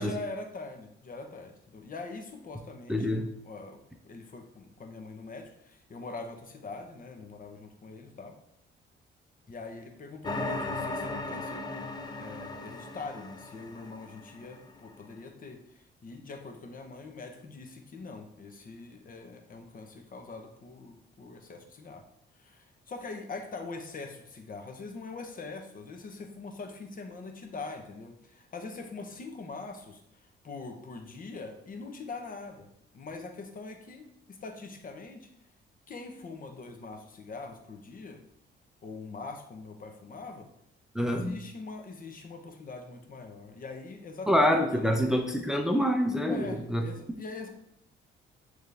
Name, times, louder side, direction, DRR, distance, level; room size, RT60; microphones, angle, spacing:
voice 1, 0.0-3.2 3.4-8.4 9.5-11.8 12.1-22.1 22.3-32.7 32.9-35.3 35.9-38.2 38.8-40.5 41.0-44.4 44.7-45.0 46.3-47.5, left 3 dB, 45° left, 4 dB, 1.0 m, -43 dB
voice 2, 2.9-3.3 40.9-41.4 44.3-46.8, equal, 5° right, 4 dB, 0.6 m, -26 dB
sound 1, 10.2-14.7, left 2 dB, 20° left, 0.8 m, -37 dB
9.1 x 3.2 x 3.4 m, 0.76 s
cardioid pair, 90°, 20 cm